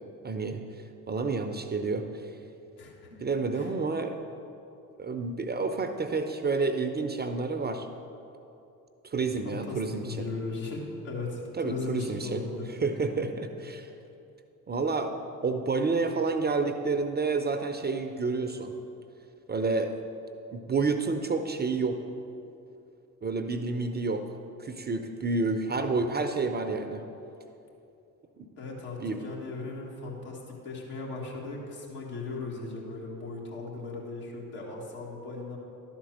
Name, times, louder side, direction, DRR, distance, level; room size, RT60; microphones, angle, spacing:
voice 1, 0.2-0.6 1.1-2.1 3.2-4.2 5.0-7.9 9.0-10.3 11.6-12.4 12.8-13.9 14.7-15.1 15.4-18.7 19.5-19.9 20.5-22.0 23.2-24.2 24.6-27.0 28.4-28.5 29.0-29.2, right 4 dB, 20° right, 7 dB, 0.5 m, -29 dB
voice 2, 2.8-3.2 3.5-3.7 9.4-12.7 28.6-35.6, left 3 dB, 75° left, -3 dB, 1.8 m, -37 dB
11.5 x 4.4 x 6.4 m, 2.8 s
figure-of-eight pair, 50°, 47 cm